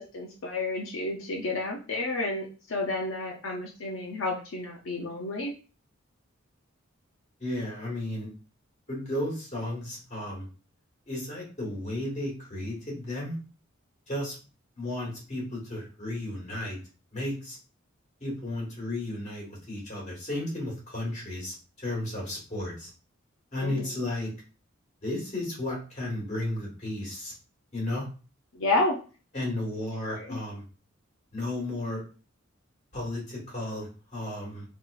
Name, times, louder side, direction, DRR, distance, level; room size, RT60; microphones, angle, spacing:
voice 1, 0.1-5.5 23.6-23.9 28.5-29.0 30.2-30.4, left 2 dB, 80° left, 0 dB, 0.6 m, -30 dB
voice 2, 7.4-8.3 8.9-10.5 11.1-13.4 14.1-14.4 14.8-16.8 17.1-17.6 18.2-22.9 23.5-24.3 25.0-27.3 27.7-28.0 29.3-30.6 31.3-32.0 32.9-34.6, left 1 dB, 35° left, -2 dB, 1.6 m, -33 dB
3.7 x 2.9 x 2.5 m, 0.35 s
head